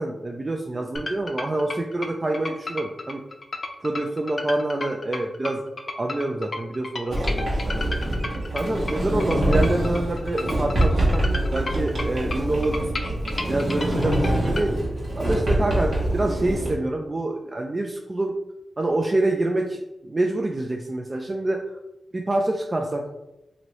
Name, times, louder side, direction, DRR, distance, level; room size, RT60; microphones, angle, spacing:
voice 1, 0.0-3.2 3.8-5.6 6.0-7.9 8.5-12.9 13.5-14.8 15.1-18.3 18.8-21.8 22.1-23.1, right 2 dB, 35° right, 2 dB, 0.3 m, -26 dB
sound 1, 1.0-14.7, left 2 dB, 50° left, 0.5 m, -33 dB
Sliding door, 7.1-16.7, right 1 dB, 70° right, 1.1 m, -25 dB
2.9 x 2.6 x 3.1 m, 0.92 s
cardioid pair, 60°, 0 cm